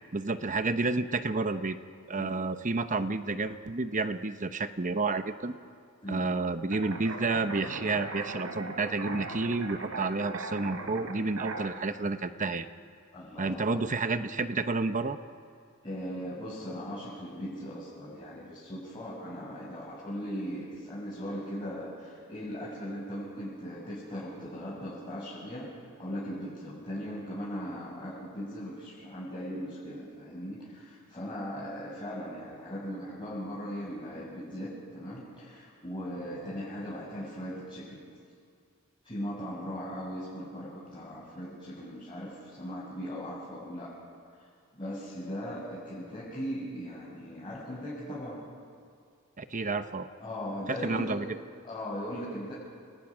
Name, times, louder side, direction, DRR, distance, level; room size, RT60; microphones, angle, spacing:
voice 1, 0.1-1.8 2.1-5.5 6.1-12.7 13.4-15.2 49.4-50.1 50.7-51.3, right 3 dB, 35° right, 10 dB, 0.9 m, -30 dB
sound 1, 6.7-11.7, right 3 dB, 80° right, 3.4 m, -39 dB
voice 2, 13.1-13.8 15.8-25.7 26.0-38.1 39.0-43.9 44.7-48.4 50.2-51.2 51.6-52.5, equal, 25° left, -9 dB, 7.1 m, -38 dB
29.5 x 29.0 x 6.3 m, 2.2 s
head